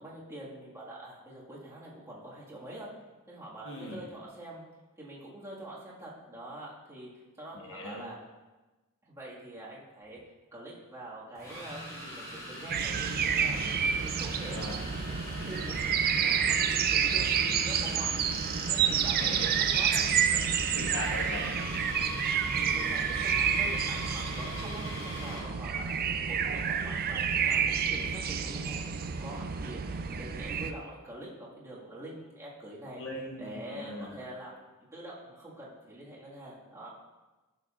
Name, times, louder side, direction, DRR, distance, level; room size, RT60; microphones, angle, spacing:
voice 1, 0.0-2.9 3.3-4.6 5.0-7.1 7.4-8.2 9.0-10.2 10.5-13.6 13.9-14.9 15.5-15.9 16.1-18.1 18.7-20.1 20.8-20.9 22.6-26.0 26.3-27.6 27.9-33.0 33.4-34.6 34.9-36.9, right 1 dB, 15° right, -7 dB, 1.9 m, -45 dB
voice 2, 3.6-4.0 7.5-8.1 14.5-14.8 18.9-19.5 20.3-21.6 33.0-34.2, left 1 dB, 60° left, -2 dB, 1.3 m, -40 dB
sound 1, 10.0-10.2 11.4-25.5, equal, 15° left, 2.0 m, -42 dB
sound 2, 12.7-30.7, right 7 dB, 45° right, 0.4 m, -29 dB
11.0 x 6.8 x 2.5 m, 1.2 s
head